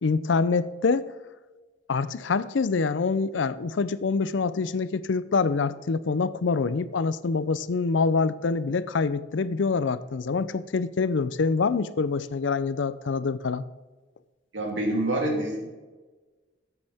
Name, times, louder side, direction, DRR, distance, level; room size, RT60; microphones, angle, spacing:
voice 1, 0.0-1.1 1.9-13.6, left 4 dB, 75° left, 16 dB, 0.5 m, -25 dB
voice 2, 14.5-15.7, right 1 dB, 85° right, 0 dB, 2.9 m, -27 dB
13.0 x 8.3 x 3.5 m, 1.3 s
head